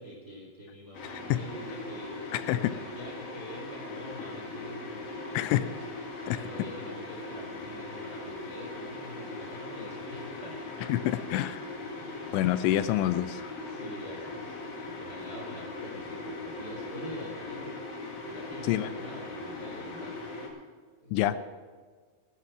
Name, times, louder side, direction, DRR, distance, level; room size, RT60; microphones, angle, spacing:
voice 1, 0.0-5.7 6.3-10.6 11.1-11.3 12.0-12.3 13.7-17.8 18.2-20.2 21.0-21.4, equal, 35° right, 0 dB, 1.5 m, -45 dB
sound 1, 0.9-20.5, left 2 dB, 55° left, 3.6 m, -40 dB
voice 2, 1.0-1.4 2.3-2.7 5.3-5.6 6.3-6.4 10.9-11.6 12.3-13.5 18.6-18.9 21.1-21.4, left 14 dB, 85° left, 13 dB, 2.8 m, -27 dB
15.5 x 11.0 x 5.9 m, 1.5 s
omnidirectional pair, 5.5 m